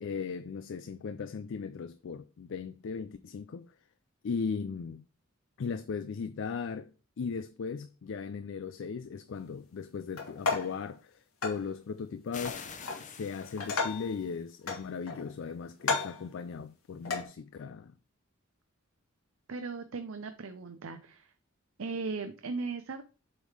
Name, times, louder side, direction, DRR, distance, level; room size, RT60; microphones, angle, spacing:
voice 1, 0.0-3.7 4.2-5.0 5.6-12.6 13.0-18.0, left 5 dB, 60° left, 0.4 m, -37 dB
sound 1, 10.2-10.8 11.4-11.6 12.4-13.1 13.4-14.1 14.7-15.4 15.8-16.2 17.1-17.3, left 4 dB, 85° left, 1.7 m, -33 dB
sound 2, 12.3-14.4, left 6 dB, 35° left, 0.8 m, -46 dB
voice 2, 19.5-21.3 21.8-23.0, right 4 dB, 70° right, 0.6 m, -37 dB
8.0 x 3.7 x 4.8 m
head